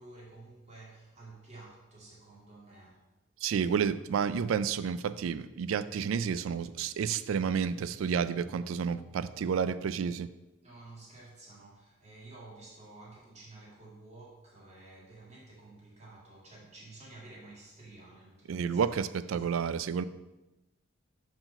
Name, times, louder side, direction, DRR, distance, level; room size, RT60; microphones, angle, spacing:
voice 1, 0.0-3.0 10.6-19.1 19.4-19.7, right 2 dB, 30° right, 1.9 m, -52 dB
voice 2, 3.4-10.3 18.5-20.0, right 7 dB, 80° right, 0.3 m, -30 dB
5.7 x 4.7 x 5.3 m
head